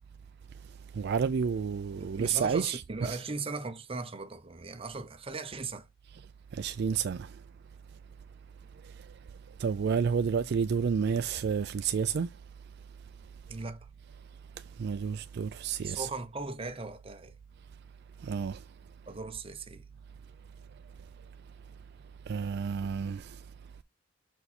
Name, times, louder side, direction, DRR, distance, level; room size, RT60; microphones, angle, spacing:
voice 1, 1.0-3.2 6.6-7.3 9.6-12.3 14.8-16.1 18.2-18.6 22.3-23.2, right 6 dB, 55° right, 0.3 m, -30 dB
voice 2, 2.0-5.9 13.5-13.9 15.8-17.4 19.1-19.9, right 3 dB, 30° right, 0.8 m, -38 dB
6.6 x 4.6 x 4.2 m
head